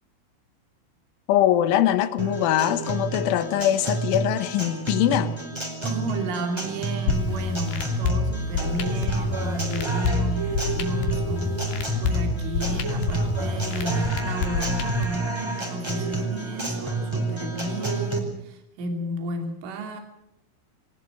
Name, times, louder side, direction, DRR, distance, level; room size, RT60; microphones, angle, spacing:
voice 1, 1.3-5.4, left 12 dB, 75° left, 12 dB, 3.6 m, -22 dB
Guitar, 2.2-18.2, right 3 dB, 5° right, 4.0 m, -30 dB
voice 2, 5.8-20.0, right 1 dB, 75° right, 4 dB, 5.2 m, -33 dB
sound 1, 7.1-15.1, left 4 dB, 55° left, 3.9 m, -28 dB
23.0 x 19.5 x 7.9 m, 0.84 s
omnidirectional pair, 5.8 m